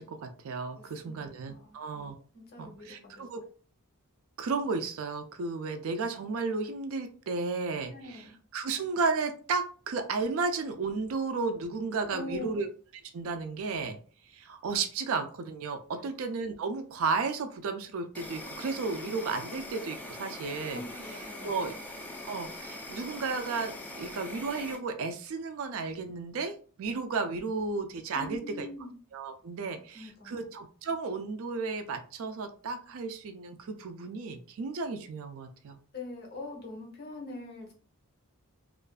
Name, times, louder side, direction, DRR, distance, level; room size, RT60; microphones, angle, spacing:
voice 1, 0.0-2.2 2.6-3.4 4.4-12.7 13.1-14.0 14.3-20.8 21.4-21.7 22.3-28.7 29.1-35.8, right 4 dB, 65° right, 8 dB, 0.4 m, -33 dB
voice 2, 0.7-1.8 2.3-3.0 7.9-8.4 12.1-12.6 15.9-16.3 20.7-21.7 28.1-29.0 29.9-30.5 35.9-37.7, left 2 dB, 45° left, 0 dB, 0.8 m, -43 dB
Insect, 18.1-24.8, left 1 dB, 10° left, 0.3 m, -42 dB
2.4 x 2.3 x 2.3 m, 0.41 s
head